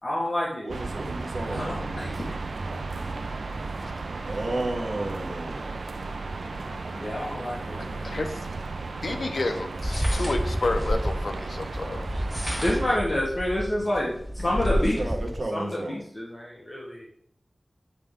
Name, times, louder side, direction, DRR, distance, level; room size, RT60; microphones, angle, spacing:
voice 1, 0.0-0.7 1.5-1.7 6.9-8.2 12.6-15.0 15.5-17.1, left 1 dB, 40° left, 1.2 m, -28 dB
voice 2, 0.6-1.8 4.2-5.6 14.5-16.0, right 2 dB, 70° right, 1.1 m, -32 dB
sound 1, 0.7-13.0, right 3 dB, 85° right, 0.4 m, -34 dB
sound 2, 8.4-8.5 9.8-11.1 12.1-13.0 13.6-13.7 14.0-15.1, equal, 10° left, 2.3 m, -31 dB
voice 3, 9.0-12.2, left 2 dB, 70° left, 0.7 m, -30 dB
sound 3, 9.8-15.4, equal, 5° right, 0.3 m, -31 dB
8.5 x 3.4 x 3.6 m
wide cardioid pair, 65°, 0 cm